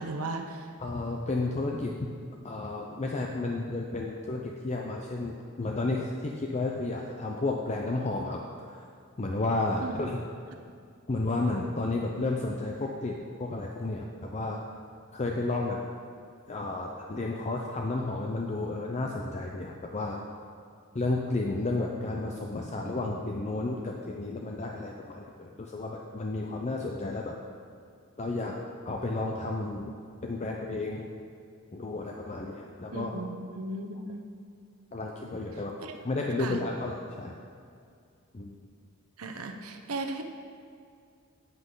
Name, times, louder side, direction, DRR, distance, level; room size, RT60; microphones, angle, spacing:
voice 1, 0.0-0.8 9.8-10.1 32.9-34.2 35.8-35.9 36.4-36.6 39.2-40.2, right 2 dB, 80° right, 5 dB, 0.9 m, -36 dB
voice 2, 0.8-2.1 2.4-8.4 8.7-8.8 9.2-10.2 11.1-14.6 15.1-15.8 16.5-20.2 20.9-27.3 28.2-28.5 28.8-29.9 30.2-31.1 31.7-33.1 34.9-35.7 36.0-37.3 38.3-38.5, left 2 dB, 30° left, 0 dB, 0.6 m, -32 dB
10.5 x 8.3 x 3.9 m, 2.3 s
head